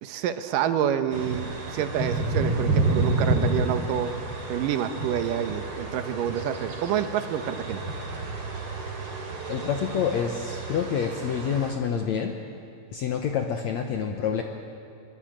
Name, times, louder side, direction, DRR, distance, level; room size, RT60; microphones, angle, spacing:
voice 1, 0.0-4.1 4.5-7.8, right 9 dB, 75° right, 10 dB, 2.6 m, -28 dB
sound 1, 1.1-11.7, right 2 dB, 40° right, 3.4 m, -30 dB
voice 2, 9.5-12.4 12.9-14.4, left 7 dB, 65° left, 4 dB, 2.0 m, -27 dB
23.0 x 23.0 x 8.9 m, 2.5 s
omnidirectional pair, 4.1 m